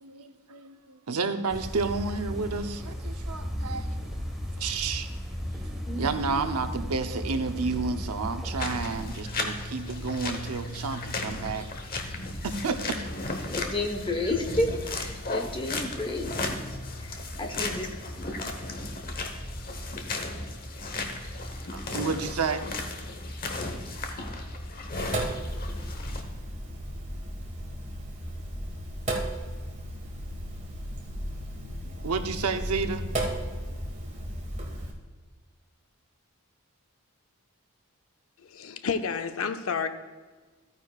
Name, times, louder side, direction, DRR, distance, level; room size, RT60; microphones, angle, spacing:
voice 1, 0.0-4.1 4.6-5.1 5.9-11.7 12.4-13.0 21.7-22.7 31.8-33.1, right 4 dB, 85° right, 7 dB, 0.7 m, -31 dB
sound 1, 1.5-9.2, equal, ahead, 1.2 m, -35 dB
voice 2, 5.9-6.6 13.5-16.3 17.0-17.9, left 2 dB, 20° left, 3 dB, 1.0 m, -31 dB
sound 2, 8.6-26.2, left 2 dB, 40° left, 1.0 m, -35 dB
Sink (filling or washing), 25.0-34.9, right 1 dB, 30° right, 1.6 m, -35 dB
voice 3, 38.5-39.9, left 5 dB, 65° left, 9 dB, 0.6 m, -30 dB
14.0 x 9.3 x 2.4 m, 1.4 s
head